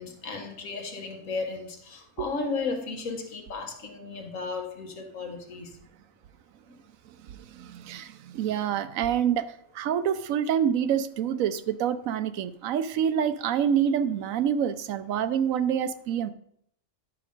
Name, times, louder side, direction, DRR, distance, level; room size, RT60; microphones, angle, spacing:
voice 1, 0.0-5.7, left 4 dB, 70° left, 4 dB, 1.6 m, -34 dB
voice 2, 7.5-16.3, right 8 dB, 80° right, 13 dB, 1.0 m, -27 dB
10.5 x 5.0 x 5.2 m, 0.70 s
omnidirectional pair, 1.4 m